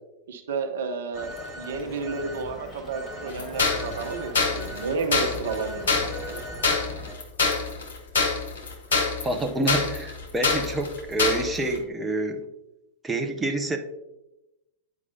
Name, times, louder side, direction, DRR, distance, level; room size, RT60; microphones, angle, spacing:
voice 1, 0.3-1.3 1.6-6.4, right 4 dB, 60° right, 5 dB, 0.7 m, -31 dB
Telephone, 1.1-7.1, equal, 15° left, 1.5 m, -39 dB
sound 1, 3.4-11.8, left 4 dB, 60° left, 1.2 m, -25 dB
voice 2, 9.2-12.4 13.0-13.8, right 2 dB, 15° right, 4 dB, 0.7 m, -27 dB
9.8 x 4.7 x 2.7 m, 0.93 s
figure-of-eight pair, 90°, 0 cm